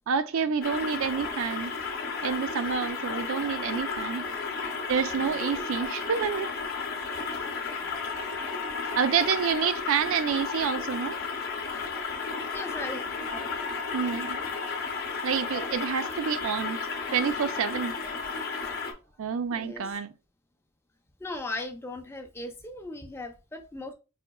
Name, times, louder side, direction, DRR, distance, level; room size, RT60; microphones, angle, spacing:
voice 1, 0.1-1.7 2.2-4.3 4.9-6.5 9.0-11.2 13.9-14.4 15.2-16.8 17.1-17.9 19.2-20.1, right 6 dB, 60° right, 0.3 m, -28 dB
sound 1, 0.6-18.9, left 4 dB, 45° left, 0.7 m, -33 dB
voice 2, 5.0-5.7 7.3-7.5 12.1-12.2 12.5-13.1 13.3-13.5 19.5-20.0 21.2-23.9, left 2 dB, 10° left, 0.4 m, -38 dB
sound 2, 8.0-9.9 13.2-15.0, left 4 dB, 90° left, 0.5 m, -42 dB
4.9 x 2.7 x 2.2 m
head